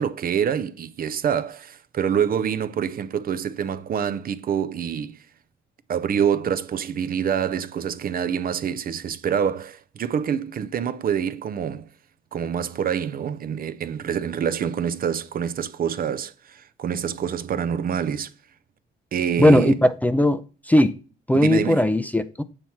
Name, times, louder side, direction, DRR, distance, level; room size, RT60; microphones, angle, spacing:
voice 1, 0.0-5.2 5.9-11.9 12.3-18.3 19.1-19.7 21.3-21.8, right 8 dB, 50° right, 0.5 m, -26 dB
voice 2, 19.4-21.0 21.3-22.4, left 1 dB, 10° left, 0.4 m, -18 dB
7.2 x 3.2 x 5.6 m
cardioid pair, 90°, 20 cm